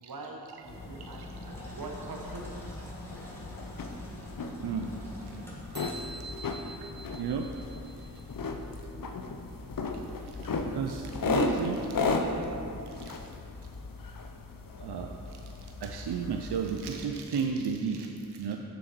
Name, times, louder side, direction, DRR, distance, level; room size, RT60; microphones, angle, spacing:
voice 1, 0.0-2.8, right 2 dB, 60° right, 0 dB, 1.1 m, -43 dB
sound 1, 0.7-17.1, left 3 dB, 55° left, 0.7 m, -36 dB
Engine, 0.7-8.3, equal, 5° left, 1.7 m, -47 dB
sound 2, 5.8-8.4, right 2 dB, 25° right, 0.7 m, -46 dB
voice 2, 7.2-7.5 10.6-11.9 13.0-13.1 14.8-15.1 15.8-18.6, right 6 dB, 80° right, 3 dB, 0.5 m, -32 dB
7.0 x 6.4 x 4.5 m, 2.7 s
wide cardioid pair, 55°, 39 cm